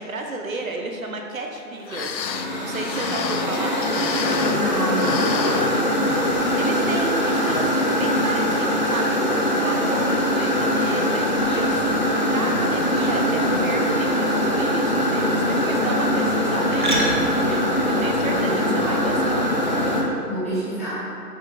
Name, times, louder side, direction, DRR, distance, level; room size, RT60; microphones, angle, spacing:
voice 1, 0.0-3.8 6.5-19.4, right 3 dB, 55° right, 2 dB, 1.1 m, -32 dB
sound 1, 1.6-1.7 1.9-4.7 4.9-6.3 6.7-6.8 7.5-7.7 8.2-8.3, left 7 dB, 85° left, 0.7 m, -30 dB
sound 2, 2.3-20.0, equal, 30° left, 0.6 m, -22 dB
voice 2, 4.2-6.3 18.3-19.0 20.2-21.0, equal, 10° left, -14 dB, 1.0 m, -29 dB
sound 3, 7.9-19.3, right 1 dB, 30° right, 0.9 m, -37 dB
9.2 x 6.7 x 4.0 m, 2.7 s
hypercardioid pair, 165°, 50 cm